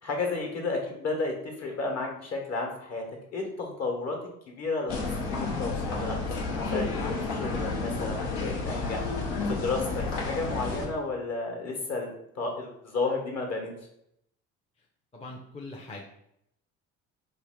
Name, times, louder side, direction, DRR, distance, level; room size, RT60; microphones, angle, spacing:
voice 1, 0.0-3.0 3.3-4.2 4.5-9.0 9.5-13.7, left 3 dB, 50° left, 1 dB, 1.2 m, -32 dB
sound 1, 4.9-10.9, left 3 dB, 85° left, 1.0 m, -31 dB
voice 2, 15.1-16.1, left 2 dB, 20° left, 0 dB, 0.6 m, -42 dB
3.3 x 2.5 x 3.6 m, 0.77 s
supercardioid pair, 75°, 33 cm